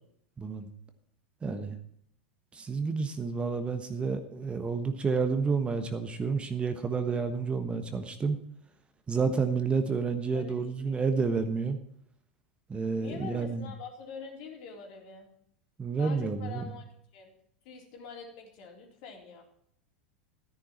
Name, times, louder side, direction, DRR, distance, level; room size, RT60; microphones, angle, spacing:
voice 1, 0.4-0.7 1.4-1.8 2.5-8.4 9.1-11.8 12.7-13.6 15.8-16.7, right 5 dB, 20° right, 8 dB, 1.2 m, -30 dB
voice 2, 13.0-15.3 16.0-16.8 17.1-17.3 17.6-19.4, left 6 dB, 55° left, 1 dB, 3.6 m, -45 dB
13.0 x 10.5 x 4.4 m, 0.70 s
hypercardioid pair, 90°, 5 cm